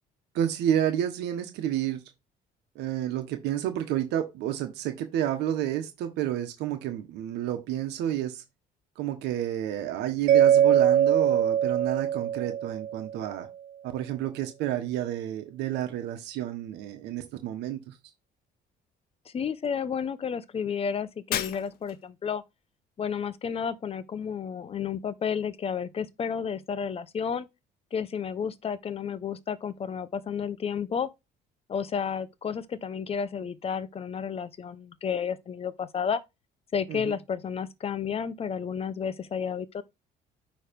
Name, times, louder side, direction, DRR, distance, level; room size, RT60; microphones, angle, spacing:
voice 1, 0.3-2.0 2.7-8.4 9.0-13.5 13.8-18.0 36.9-37.1, right 11 dB, 85° right, 1.1 m, -30 dB
Mallet percussion, 10.3-13.3, right 10 dB, 55° right, 0.5 m, -22 dB
voice 2, 19.3-22.4 23.0-27.5 27.9-31.1 31.7-36.2 36.7-39.8, left 7 dB, 35° left, 0.7 m, -31 dB
Shatter, 21.3-22.1, left 11 dB, 65° left, 0.9 m, -33 dB
9.0 x 3.2 x 5.2 m
cardioid pair, 110°, 17 cm